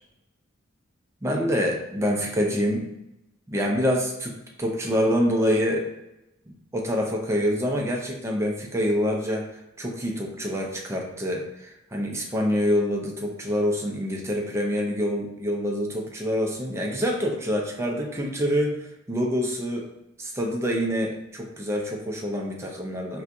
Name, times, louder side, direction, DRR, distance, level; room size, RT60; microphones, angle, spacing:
voice 1, 1.2-2.9 3.5-5.9 6.5-19.9 20.2-23.2, equal, 15° right, -1 dB, 0.5 m, -26 dB
4.2 x 2.2 x 2.5 m, 0.90 s
head